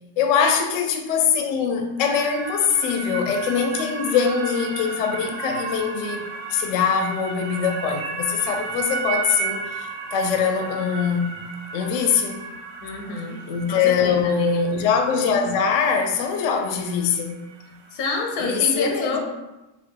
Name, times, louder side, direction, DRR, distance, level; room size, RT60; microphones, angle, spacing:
voice 1, 0.2-6.2 6.5-11.3 11.7-12.4 13.5-17.4 18.4-19.2, left 6 dB, 70° left, 4 dB, 0.8 m, -22 dB
sound 1, 2.0-18.4, right 4 dB, 85° right, 1.1 m, -34 dB
voice 2, 12.8-13.4 13.7-14.6 17.9-19.2, left 3 dB, 90° left, 2 dB, 1.2 m, -28 dB
4.2 x 2.2 x 4.5 m, 1.0 s
omnidirectional pair, 1.5 m